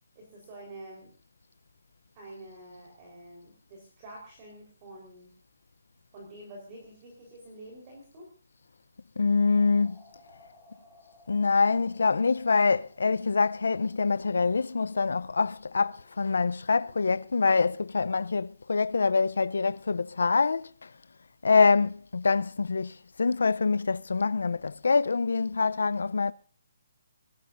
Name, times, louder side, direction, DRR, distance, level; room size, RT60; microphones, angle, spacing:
voice 1, 0.1-1.1 2.1-5.3 6.1-8.3, right 1 dB, 20° right, 4.4 m, -47 dB
voice 2, 9.2-10.0 11.3-20.9 21.4-26.3, left 4 dB, 85° left, 0.7 m, -25 dB
sound 1, 9.3-17.9, left 2 dB, ahead, 5.1 m, -60 dB
24.0 x 19.5 x 2.7 m
hypercardioid pair, 175°, 0 cm